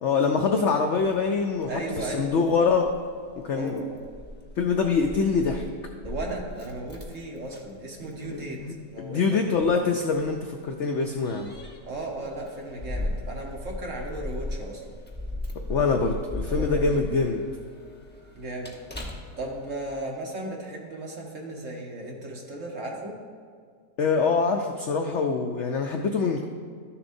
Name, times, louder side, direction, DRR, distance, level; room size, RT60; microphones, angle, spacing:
voice 1, 0.0-1.7 2.0-2.9 3.4-3.8 4.6-5.7 8.2-11.5 15.7-17.4 24.0-26.4, left 5 dB, 80° left, 3 dB, 0.6 m, -24 dB
Keys jangling, 1.0-20.0, left 1 dB, 10° left, 0.6 m, -38 dB
voice 2, 1.7-2.6 3.5-4.1 6.0-9.5 11.8-14.8 16.5-17.2 18.3-18.7 19.4-23.2, right 2 dB, 50° right, -1 dB, 1.5 m, -36 dB
13.0 x 7.1 x 2.6 m, 2.1 s
omnidirectional pair, 1.8 m